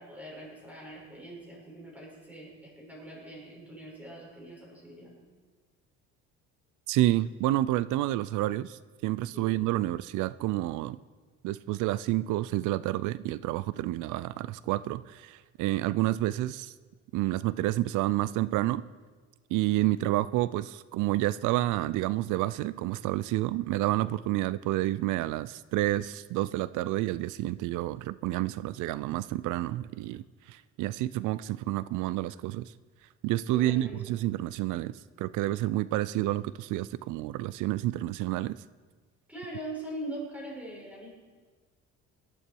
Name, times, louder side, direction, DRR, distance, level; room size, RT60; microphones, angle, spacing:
voice 1, 0.0-5.1 9.3-9.6 33.5-34.2 39.3-41.1, right 1 dB, 5° right, -4 dB, 6.2 m, -42 dB
voice 2, 6.9-11.0 11.4-16.7 17.1-18.8 19.5-30.2 30.5-32.7 33.2-34.9 35.2-38.6, right 16 dB, 80° right, 18 dB, 0.5 m, -29 dB
19.0 x 12.5 x 4.6 m, 1.4 s
cardioid pair, 120°, 30 cm